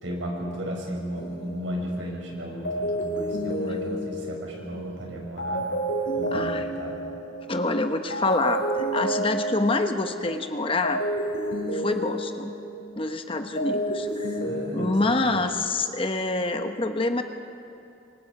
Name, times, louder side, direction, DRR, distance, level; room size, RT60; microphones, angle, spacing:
voice 1, 0.0-5.7 6.1-7.0 14.4-15.3, equal, 90° right, -1 dB, 5.6 m, -35 dB
sound 1, 1.1-2.1 2.6-7.8 8.1-13.1 13.4-15.5, right 1 dB, 75° left, 5.4 m, -30 dB
voice 2, 6.3-6.7 7.5-11.0 11.7-12.5 13.0-14.4 14.7-17.2, left 2 dB, 30° left, 6 dB, 0.9 m, -26 dB
26.5 x 24.5 x 4.9 m, 2.7 s
head